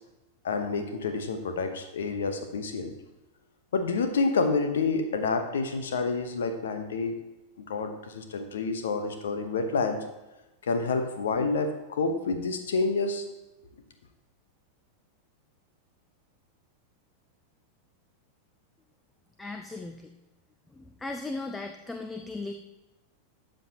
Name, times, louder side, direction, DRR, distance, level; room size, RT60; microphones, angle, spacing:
voice 1, 0.4-2.9 3.7-7.2 7.6-10.0 10.6-13.2, left 4 dB, 65° left, 7 dB, 1.0 m, -28 dB
voice 2, 19.4-20.1 20.7-22.5, left 3 dB, 10° left, 6 dB, 0.6 m, -37 dB
12.5 x 7.6 x 2.9 m, 1.0 s
figure-of-eight pair, 90°, 0 cm